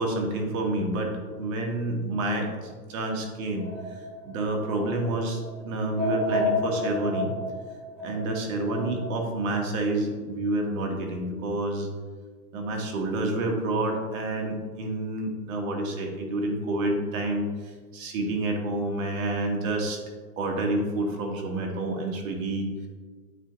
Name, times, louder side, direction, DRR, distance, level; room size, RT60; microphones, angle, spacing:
voice 1, 0.0-4.0 4.2-7.3 8.0-11.9 12.5-20.0 20.4-22.9, right 2 dB, 55° right, 1 dB, 1.4 m, -29 dB
sound 1, 3.6-9.1, left 2 dB, ahead, 1.5 m, -31 dB
8.8 x 2.9 x 3.9 m, 1.5 s
hypercardioid pair, 130°, 47 cm